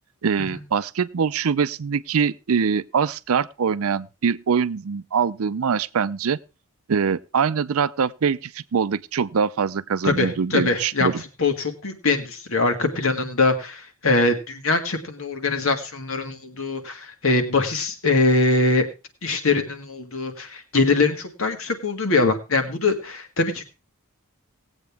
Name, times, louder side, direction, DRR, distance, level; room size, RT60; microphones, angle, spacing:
voice 1, 0.2-6.4 6.9-11.2, right 6 dB, 75° right, 0.5 m, -23 dB
voice 2, 10.0-11.1 11.4-18.8 19.2-23.6, left 3 dB, 70° left, 1.8 m, -22 dB
18.5 x 8.0 x 3.5 m
head